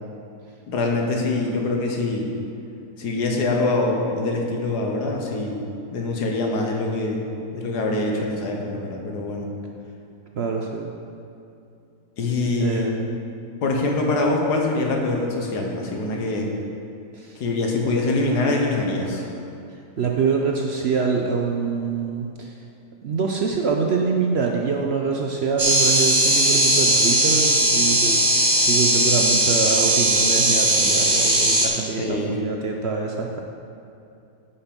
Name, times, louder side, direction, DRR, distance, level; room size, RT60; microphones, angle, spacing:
voice 1, 0.7-2.3 3.0-5.6 5.9-7.2 7.5-9.5 12.2-12.9 13.6-16.5 17.4-19.3 32.0-32.3, left 2 dB, 90° left, 1 dB, 1.7 m, -24 dB
voice 2, 10.3-10.9 12.6-13.0 17.1-17.4 20.0-22.5 23.0-33.4, right 5 dB, 60° right, 1 dB, 0.7 m, -25 dB
sound 1, 25.6-31.7, right 1 dB, 30° right, 1.2 m, -18 dB
9.9 x 5.8 x 5.2 m, 2.6 s
omnidirectional pair, 1.7 m